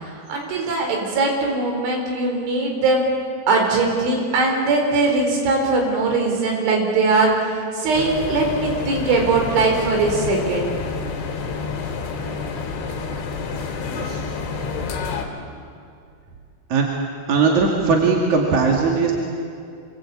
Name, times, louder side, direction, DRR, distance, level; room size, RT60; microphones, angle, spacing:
voice 1, 0.0-3.0 3.5-10.7, right 3 dB, 75° right, 1 dB, 6.9 m, -20 dB
sound 1, 7.9-15.3, left 5 dB, 75° left, 5.1 m, -28 dB
voice 2, 17.3-19.1, right 4 dB, 45° right, 0 dB, 3.1 m, -18 dB
28.0 x 25.0 x 8.6 m, 2.4 s
omnidirectional pair, 5.5 m